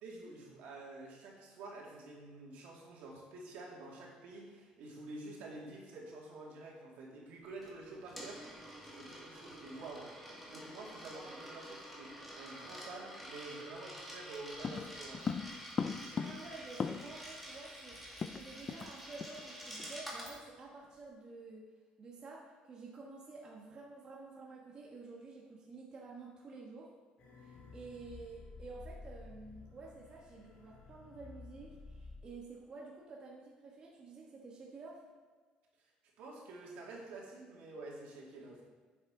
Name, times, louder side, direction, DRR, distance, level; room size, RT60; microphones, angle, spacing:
voice 1, 0.0-8.7 8.9-10.1 10.5-15.3 36.2-38.6, right 2 dB, 70° right, -3 dB, 2.4 m, -49 dB
Coin (dropping), 7.6-20.4, equal, ahead, 1.9 m, -49 dB
sound 1, 14.6-17.3 17.6-17.7 17.9-18.9 19.2-19.4 19.8-20.0, left 5 dB, 25° left, 0.3 m, -39 dB
voice 2, 16.1-21.7 22.0-26.9 27.4-35.0, right 3 dB, 30° right, -3 dB, 1.2 m, -51 dB
sound 2, 27.2-32.2, left 3 dB, 55° left, 1.9 m, -53 dB
9.2 x 7.1 x 3.8 m, 1.5 s
cardioid pair, 150°, 3 cm